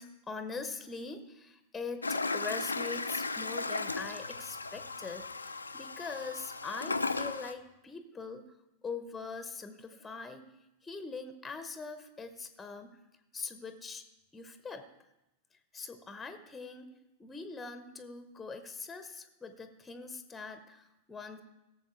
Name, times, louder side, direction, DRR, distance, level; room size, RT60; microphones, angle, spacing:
voice 1, 0.0-8.4 8.8-10.4 10.8-13.0 13.3-14.0 14.3-14.8 15.7-16.9 17.2-21.4, left 4 dB, 15° left, 9 dB, 0.9 m, -42 dB
Toilet flush, 2.0-7.5, left 3 dB, 80° left, 0.5 m, -36 dB
17.0 x 7.3 x 4.5 m, 0.94 s
figure-of-eight pair, 90°, 0 cm